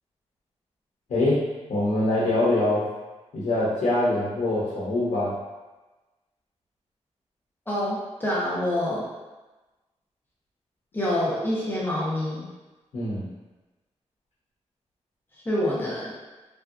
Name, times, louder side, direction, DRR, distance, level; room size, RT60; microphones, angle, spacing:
voice 1, 1.1-1.4 1.7-2.9 3.3-5.3 12.9-13.3, left 2 dB, 75° left, -7 dB, 0.8 m, -24 dB
voice 2, 7.7-9.0 10.9-12.5 15.4-16.2, left 1 dB, 15° left, -7 dB, 0.8 m, -26 dB
3.3 x 2.7 x 2.4 m, 1.1 s
wide cardioid pair, 130°, 12 cm